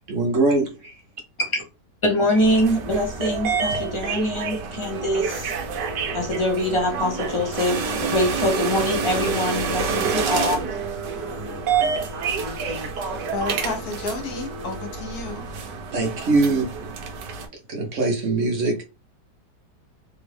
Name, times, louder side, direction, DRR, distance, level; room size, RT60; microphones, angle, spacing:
voice 1, 0.1-1.0 15.9-16.9 17.7-18.8, right 3 dB, 55° right, 1.1 m, -22 dB
voice 2, 2.0-5.5 6.1-10.7, left 1 dB, 20° left, 0.8 m, -24 dB
sound 1, 2.4-17.5, right 5 dB, 75° right, 1.3 m, -28 dB
sound 2, 4.7-15.3, left 2 dB, 45° left, 1.4 m, -41 dB
voice 3, 11.5-12.0 12.4-15.5, left 3 dB, 65° left, 1.1 m, -33 dB
3.5 x 2.4 x 3.3 m
omnidirectional pair, 1.9 m